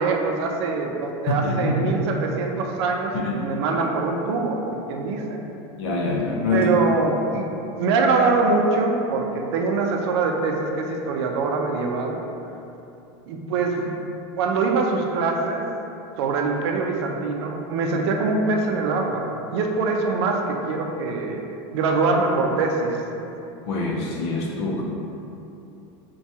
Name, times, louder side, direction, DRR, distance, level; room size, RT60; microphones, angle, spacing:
voice 1, 0.0-5.4 6.5-7.5 7.8-12.2 13.3-13.9 14.4-15.6 16.2-21.4 21.7-23.0, right 3 dB, 85° right, 1 dB, 0.4 m, -23 dB
voice 2, 1.3-1.9 3.1-3.3 5.8-6.7 23.7-24.8, left 2 dB, 80° left, -2 dB, 0.5 m, -24 dB
4.4 x 2.2 x 2.7 m, 2.9 s
supercardioid pair, 155°, 14 cm